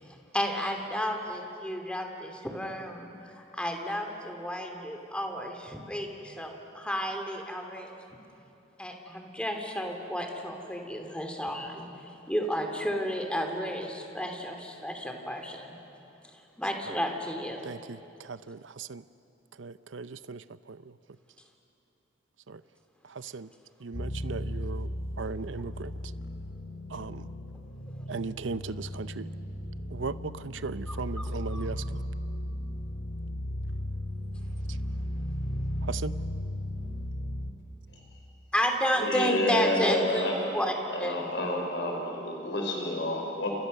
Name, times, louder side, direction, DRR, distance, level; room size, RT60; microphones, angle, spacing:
voice 1, 0.3-3.1 3.3-7.9 8.8-11.8 12.3-15.8 16.6-17.7 30.9-31.7 38.5-40.3 40.5-40.7 41.0-41.3, equal, 5° left, 3 dB, 2.9 m, -32 dB
voice 2, 19.6-20.4 23.3-23.5 23.8-24.9 25.2-25.9 26.9-27.2 28.1-29.2 29.9-30.1 30.6-31.8 35.9-36.1, right 4 dB, 85° right, 14 dB, 0.7 m, -36 dB
sound 1, 23.9-37.5, equal, 85° left, 3.4 m, -35 dB
voice 3, 39.0-40.6 40.9-43.5, left 1 dB, 65° left, 1 dB, 5.3 m, -29 dB
30.0 x 28.5 x 6.7 m, 2.7 s
head